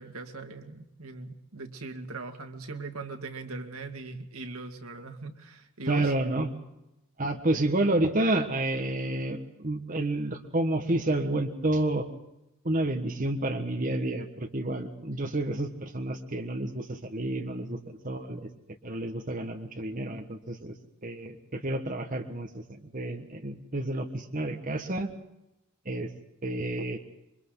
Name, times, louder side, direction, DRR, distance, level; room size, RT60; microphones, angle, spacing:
voice 1, 0.0-6.1, right 3 dB, 80° right, 5 dB, 2.2 m, -40 dB
voice 2, 5.9-6.5 7.2-12.1 12.6-17.8 18.0-18.5 18.8-20.7 21.0-25.1 25.8-26.1 26.4-27.0, right 1 dB, 40° right, 3 dB, 1.6 m, -30 dB
28.0 x 24.0 x 4.0 m, 0.88 s
head